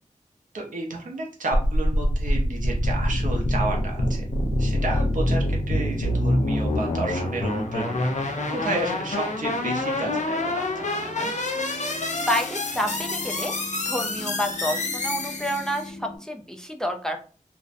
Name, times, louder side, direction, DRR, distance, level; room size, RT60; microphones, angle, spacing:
voice 1, 0.5-4.2 4.6-11.3, right 2 dB, 85° right, 0 dB, 0.6 m, -32 dB
sound 1, 1.5-15.9, left 1 dB, 65° left, 0.5 m, -26 dB
sound 2, 5.6-16.2, left 1 dB, 55° right, 1.0 m, -42 dB
voice 2, 12.3-13.5 13.8-17.2, equal, 5° left, 4 dB, 0.3 m, -29 dB
2.5 x 2.0 x 2.4 m, 0.39 s
wide cardioid pair, 85°, 13 cm